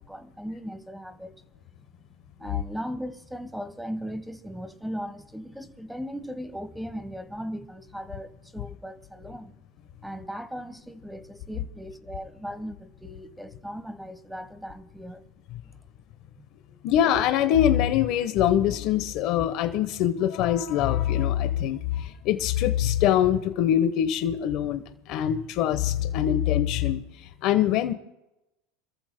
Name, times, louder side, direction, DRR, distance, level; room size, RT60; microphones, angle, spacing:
voice 1, 0.0-1.4 2.4-9.5 10.0-15.2 15.6-15.7, equal, ahead, 1.2 m, -38 dB
voice 2, 16.8-24.8 25.1-27.0 27.4-27.9, left 11 dB, 55° left, 1.0 m, -23 dB
29.5 x 14.0 x 2.2 m
supercardioid pair, 120°, 0 cm